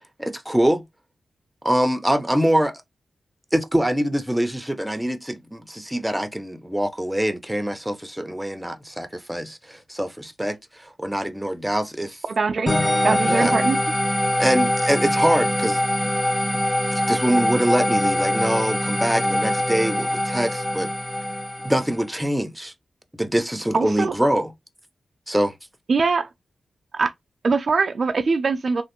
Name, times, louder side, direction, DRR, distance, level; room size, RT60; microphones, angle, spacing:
voice 1, 0.2-0.8 1.6-2.8 3.5-12.2 13.2-13.6 14.4-15.8 16.9-20.9 21.6-22.7 23.2-24.5 25.3-25.5, right 1 dB, 5° right, 0.6 m, -24 dB
voice 2, 12.3-12.8 13.0-13.8 23.7-24.1 25.9-26.3 26.9-27.1 27.4-28.8, right 4 dB, 60° right, 0.3 m, -22 dB
sound 1, 12.7-22.0, left 1 dB, 15° left, 1.2 m, -23 dB
3.1 x 2.5 x 2.9 m
cardioid pair, 65°, 0 cm